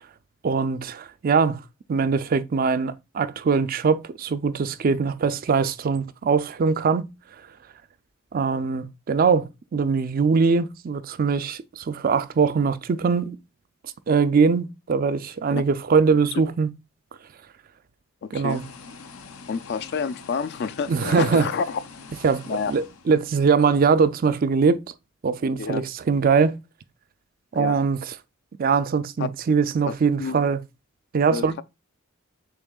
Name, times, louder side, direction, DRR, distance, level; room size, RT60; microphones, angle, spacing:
voice 1, 0.4-1.6 1.9-7.1 8.3-13.4 14.1-16.7 18.3-18.6 20.9-21.5 22.2-24.8 25.2-26.5 27.5-28.1 28.6-30.6 31.1-31.6, right 5 dB, 40° right, 0.4 m, -22 dB
voice 2, 18.2-18.6 19.5-21.8 22.5-22.7 25.6-25.8 27.5-27.8 29.2-29.3 29.9-30.4 31.3-31.4, left 5 dB, 50° left, 0.4 m, -28 dB
sound 1, 18.5-23.7, left 4 dB, 90° left, 0.8 m, -44 dB
7.0 x 3.0 x 2.3 m
head